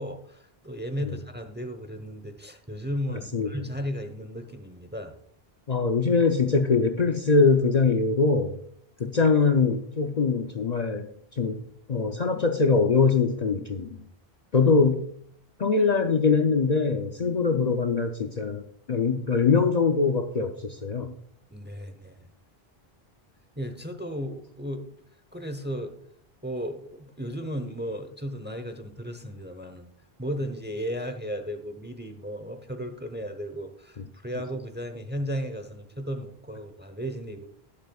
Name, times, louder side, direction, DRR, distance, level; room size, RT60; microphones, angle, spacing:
voice 1, 0.0-5.1 21.5-22.2 23.6-24.8 25.3-25.9 26.4-29.9 30.2-37.5, equal, 10° right, 7 dB, 0.8 m, -35 dB
voice 2, 3.1-3.5 5.7-8.5 9.0-11.1 11.4-11.6 11.9-14.0 14.5-15.1 15.6-18.6 18.9-21.1, left 4 dB, 45° left, 6 dB, 0.7 m, -23 dB
11.5 x 11.0 x 2.4 m, 0.62 s
omnidirectional pair, 1.0 m